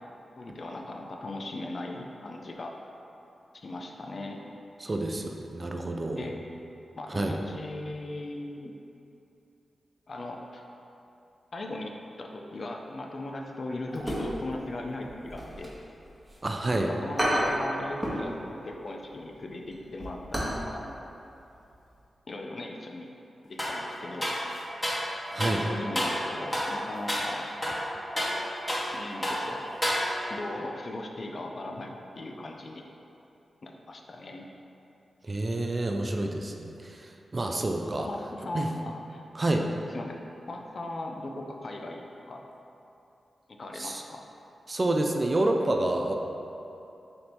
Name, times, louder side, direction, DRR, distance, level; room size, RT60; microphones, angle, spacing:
voice 1, 0.4-2.7 3.5-4.4 6.1-6.4 7.0-8.7 10.1-10.6 11.5-15.7 16.9-20.8 22.3-23.1 23.4-24.3 25.5-27.5 28.9-29.7 30.3-32.8 33.6-34.5 38.0-39.2 39.9-40.2 40.5-42.4 43.5-44.2, left 2 dB, 55° left, 2 dB, 0.4 m, -38 dB
voice 2, 4.8-6.3 7.1-7.4 16.4-16.9 25.3-25.6 35.2-38.1 38.5-38.7 39.4-39.7 43.7-44.0 44.7-46.1, right 2 dB, 40° right, 3 dB, 0.4 m, -28 dB
sound 1, 13.9-14.7 15.0-16.4 16.7-16.8 17.2-18.3 18.6-18.8 19.2-20.6 20.9-21.0 21.5-21.7 22.0-22.1, equal, 20° right, 1.0 m, -31 dB
sound 2, 23.6-23.8 24.2-25.1 25.4-25.6 26.0-26.2 26.5-26.8 27.1-27.3 27.6-29.0 29.2-29.5 29.8-30.4, equal, 15° left, 0.9 m, -29 dB
3.3 x 2.8 x 4.2 m, 2.8 s
cardioid pair, 45°, 0 cm